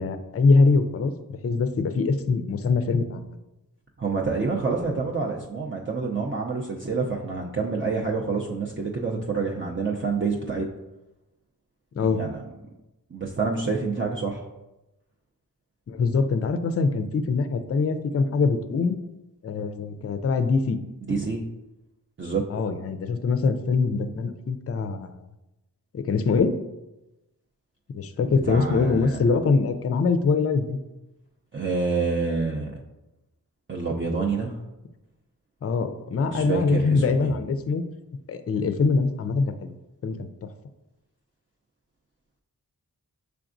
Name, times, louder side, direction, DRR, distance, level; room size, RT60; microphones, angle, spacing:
voice 1, 0.0-3.2 11.9-12.2 15.9-19.0 19.4-20.8 22.5-25.2 25.9-26.5 27.9-30.8 35.6-37.8 38.3-39.7 40.0-40.5, left 4 dB, 40° left, 9 dB, 0.4 m, -23 dB
voice 2, 4.0-10.7 12.0-12.4 13.1-14.4 21.0-21.4 22.2-22.4 28.2-29.2 31.5-32.8 33.7-34.6 36.3-37.3, right 4 dB, 30° right, -2 dB, 0.5 m, -27 dB
5.8 x 3.4 x 2.6 m, 0.98 s
cardioid pair, 45°, 38 cm